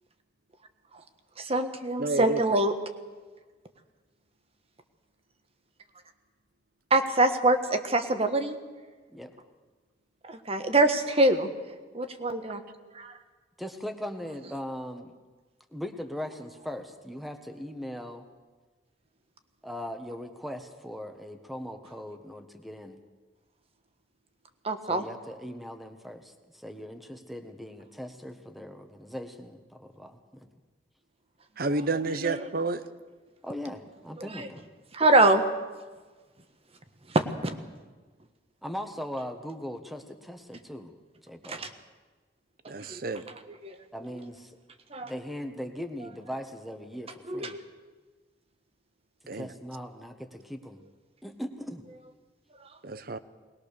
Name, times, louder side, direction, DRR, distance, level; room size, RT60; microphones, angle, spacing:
voice 1, 1.4-2.7 6.9-8.6 10.3-11.5 11.9-12.6 24.6-25.0 32.1-32.4 34.4-34.5 34.9-35.4 37.1-37.5 41.5-41.7 42.6-43.0 43.6-43.8 44.9-45.1 47.3-47.6, right 2 dB, 35° right, 7 dB, 1.4 m, -24 dB
voice 2, 2.0-2.5 31.6-32.8 42.7-43.3 49.3-49.5 52.8-53.2, right 3 dB, 50° right, 13 dB, 0.9 m, -30 dB
voice 3, 13.6-15.1 15.7-18.2 19.6-23.0 24.9-30.5 33.4-34.6 38.6-41.0 41.2-41.7 43.9-44.6 45.0-47.6 49.3-50.8 51.2-51.8, equal, ahead, 6 dB, 1.4 m, -39 dB
20.5 x 20.5 x 6.8 m, 1.3 s
head